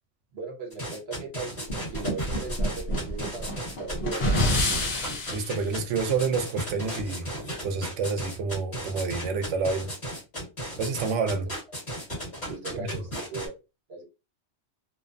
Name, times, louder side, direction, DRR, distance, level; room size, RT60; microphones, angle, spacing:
voice 1, 0.3-4.7 12.5-13.6 13.9-14.0, right 4 dB, 60° right, 1.2 m, -38 dB
sound 1, 0.7-13.5, equal, 35° left, 1.4 m, -35 dB
sound 2, 1.7-5.6, left 1 dB, 55° left, 1.0 m, -27 dB
voice 2, 5.3-7.3 7.6-9.9 10.8-11.5 12.8-12.9, right 5 dB, 80° right, 0.9 m, -28 dB
2.7 x 2.1 x 2.5 m
omnidirectional pair, 1.2 m